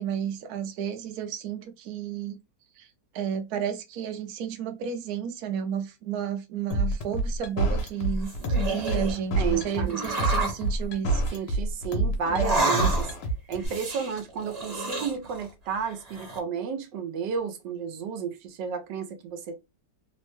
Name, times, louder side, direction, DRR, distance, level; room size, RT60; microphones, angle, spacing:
voice 1, 0.0-2.4 2.8-2.9 3.1-11.2, right 8 dB, 70° right, 1.0 m, -32 dB
sound 1, 6.7-13.7, right 2 dB, 80° left, 1.4 m, -27 dB
sound 2, 8.0-9.2 9.9-10.6 12.3-13.3 13.6-15.5 15.8-16.4, right 2 dB, 30° right, 0.9 m, -30 dB
voice 2, 9.4-10.1 11.3-13.1 13.5-19.6, right 6 dB, 85° right, 1.3 m, -32 dB
3.4 x 2.1 x 3.1 m
omnidirectional pair, 1.9 m